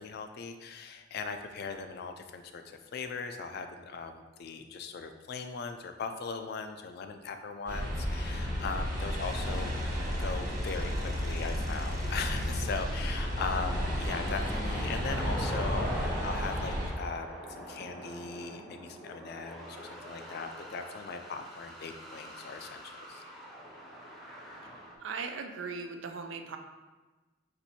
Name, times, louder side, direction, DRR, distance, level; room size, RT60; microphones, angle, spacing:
voice 1, 0.0-9.8 10.2-23.2, left 5 dB, 55° left, 7 dB, 0.4 m, -39 dB
sound 1, 7.7-16.9, equal, 45° right, 1.1 m, -32 dB
sound 2, 9.2-24.9, equal, ahead, 0.7 m, -44 dB
voice 2, 25.0-26.6, right 5 dB, 75° right, 6 dB, 0.4 m, -38 dB
4.3 x 2.6 x 4.2 m, 1.2 s
head